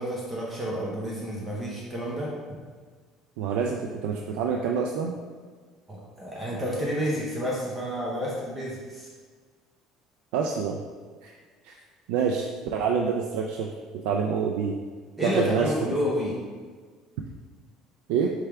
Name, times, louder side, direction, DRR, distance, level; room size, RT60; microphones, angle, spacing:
voice 1, 0.0-2.3 5.9-9.1 15.2-16.4, equal, 15° right, -5 dB, 0.7 m, -30 dB
voice 2, 3.4-5.2 10.3-10.8 11.2-11.3 11.6-11.8 12.1-12.5 12.7-13.7 14.0-14.8 15.2-15.7 18.1-18.3, right 6 dB, 85° right, 1 dB, 0.3 m, -26 dB
4.7 x 3.3 x 3.4 m, 1.5 s
cardioid pair, 145°, 0 cm